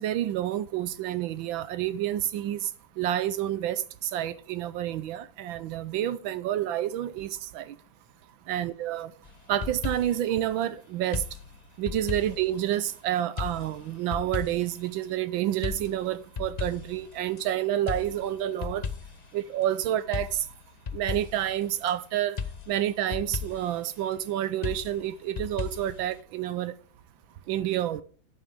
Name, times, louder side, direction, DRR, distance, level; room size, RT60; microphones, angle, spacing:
voice 1, 0.0-2.7 3.0-7.8 8.5-9.1 9.5-11.2 11.8-18.9 19.3-20.5 20.9-22.4 22.7-26.7 27.5-28.0, right 12 dB, 80° right, 1.4 m, -29 dB
sound 1, 9.3-10.3 11.1-12.9 13.4-14.8 15.6-17.4 17.9-19.3 20.1-21.9 22.4-23.8 24.6-26.2, left 6 dB, 80° left, 0.3 m, -36 dB
11.0 x 9.4 x 3.6 m
omnidirectional pair, 2.1 m